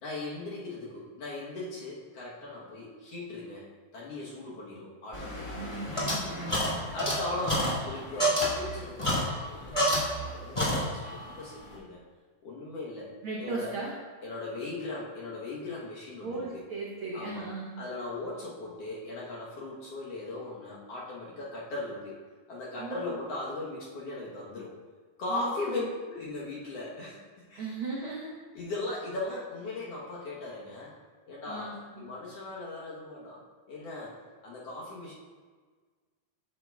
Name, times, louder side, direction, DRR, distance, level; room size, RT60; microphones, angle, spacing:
voice 1, 0.0-3.7 3.9-5.7 6.9-12.0 12.4-13.7 14.2-16.6 17.1-17.5 17.8-22.2 22.5-24.8 25.2-27.7 28.6-30.9 31.3-33.4 33.7-34.2 34.4-35.1, left 2 dB, 60° left, -5 dB, 1.7 m, -38 dB
sound 1, 5.1-10.3 10.5-11.2, equal, 30° left, 0.5 m, -29 dB
voice 2, 5.5-6.8 13.2-13.9 16.2-17.8 22.8-23.1 25.3-25.9 27.6-28.3 31.5-32.1, right 3 dB, 90° right, -4 dB, 1.1 m, -37 dB
9.5 x 7.5 x 2.3 m, 1.5 s
omnidirectional pair, 3.8 m